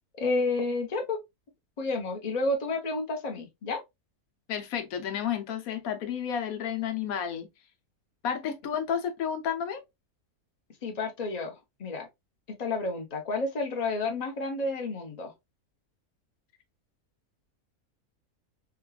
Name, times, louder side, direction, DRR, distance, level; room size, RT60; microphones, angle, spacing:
voice 1, 0.2-1.2 1.8-3.8 10.8-11.5 11.8-12.1 12.6-15.3, left 3 dB, 35° left, 0.8 m, -30 dB
voice 2, 4.5-7.5 8.2-9.8, left 8 dB, 75° left, 1.2 m, -31 dB
4.8 x 2.3 x 2.3 m
omnidirectional pair, 1.5 m